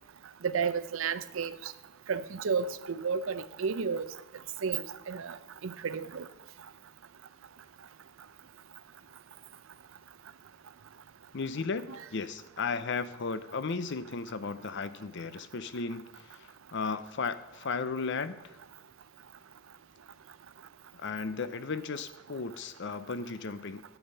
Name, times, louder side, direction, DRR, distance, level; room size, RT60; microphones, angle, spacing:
voice 1, 0.4-1.5 2.1-4.1 4.6-5.4 5.6-6.3 11.9-12.0, right 6 dB, 70° right, 14 dB, 0.5 m, -32 dB
voice 2, 11.3-11.8 12.1-18.4 20.9-23.8, left 4 dB, 55° left, 14 dB, 0.6 m, -35 dB
10.5 x 8.0 x 5.5 m, 1.1 s
head